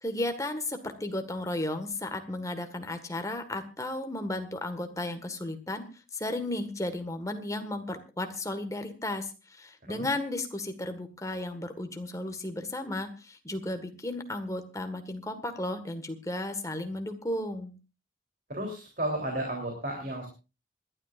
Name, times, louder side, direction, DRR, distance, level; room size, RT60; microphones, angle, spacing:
voice 1, 0.0-17.7, left 1 dB, 15° left, 7 dB, 1.6 m, -34 dB
voice 2, 18.5-20.3, right 1 dB, 45° right, 2 dB, 3.4 m, -33 dB
26.5 x 12.0 x 2.5 m, 0.31 s
head